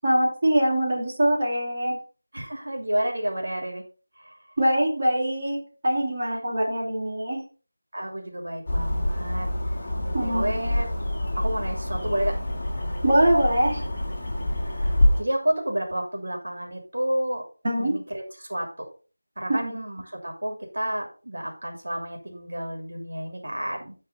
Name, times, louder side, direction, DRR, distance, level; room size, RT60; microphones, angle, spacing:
voice 1, 0.0-2.0 4.6-7.4 10.1-10.6 13.0-13.9 17.6-17.9 19.5-19.7, right 1 dB, 30° right, -5 dB, 3.2 m, -23 dB
voice 2, 2.3-3.8 4.2-4.4 6.2-6.4 7.9-10.9 11.4-12.4 14.6-17.4 17.8-18.7 19.4-23.9, right 1 dB, 65° right, 2 dB, 2.6 m, -30 dB
sound 1, 8.7-15.2, left 1 dB, 25° left, 2.1 m, -26 dB
12.0 x 4.4 x 4.0 m, 0.36 s
figure-of-eight pair, 175°, 0 cm